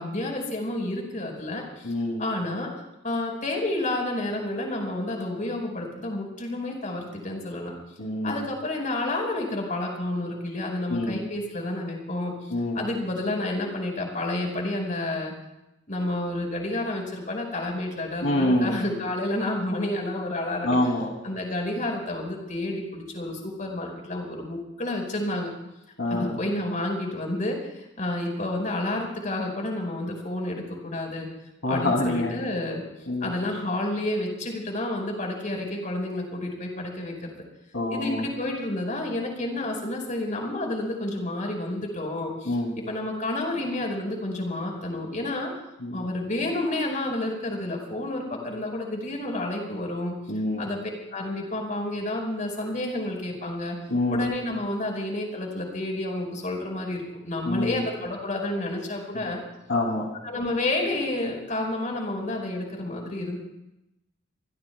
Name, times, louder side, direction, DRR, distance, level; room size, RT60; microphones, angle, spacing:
voice 1, 0.0-1.9 2.2-2.7 3.0-7.7 8.2-15.3 15.9-20.8 21.2-25.5 26.1-31.3 31.7-32.8 33.2-37.4 37.9-45.5 45.9-50.1 50.6-50.8 51.1-53.8 54.1-59.4 60.2-63.4, left 1 dB, 45° left, 1 dB, 5.1 m, -30 dB
voice 2, 1.8-2.2 8.0-8.5 10.9-11.2 12.5-12.9 18.2-18.8 20.6-21.1 26.0-26.4 31.6-32.4 33.1-33.3 37.7-38.3 42.4-42.7 45.8-46.0 50.3-50.6 53.9-54.3 57.5-57.8 59.1-59.3 59.7-60.1 60.4-60.5, left 1 dB, 90° left, 0 dB, 3.0 m, -26 dB
28.5 x 21.0 x 2.3 m, 0.89 s
head